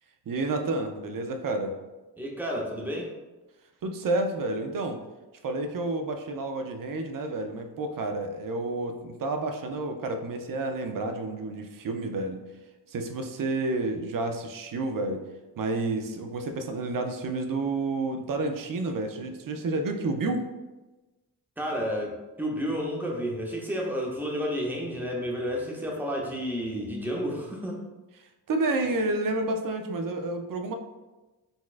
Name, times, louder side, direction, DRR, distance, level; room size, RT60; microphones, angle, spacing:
voice 1, 0.3-1.8 3.8-5.0 5.4-12.4 12.9-15.2 15.6-20.4 28.5-30.7, right 2 dB, 50° right, 6 dB, 0.5 m, -30 dB
voice 2, 2.2-3.1 21.6-27.8, equal, 5° right, -2 dB, 0.7 m, -31 dB
4.1 x 2.3 x 2.4 m, 1.1 s
cardioid pair, 70°, 42 cm